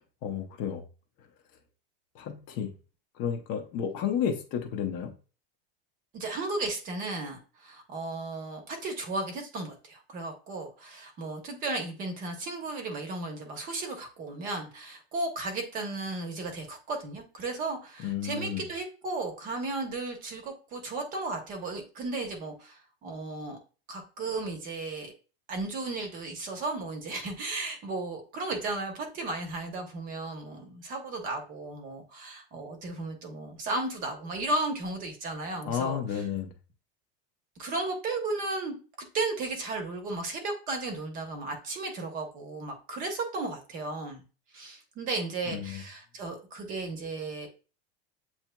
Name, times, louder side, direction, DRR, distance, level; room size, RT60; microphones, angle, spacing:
voice 1, 0.2-0.8 2.1-2.7 3.1-5.1 18.0-18.7 35.6-36.5 45.5-45.8, left 8 dB, 40° left, 4 dB, 0.6 m, -32 dB
voice 2, 6.1-23.6 23.9-25.1 25.5-36.2 37.6-38.8 39.1-44.2 44.5-47.5, right 2 dB, 30° right, 4 dB, 0.8 m, -35 dB
7.9 x 2.9 x 2.2 m, 0.35 s
cardioid pair, 175°, 29 cm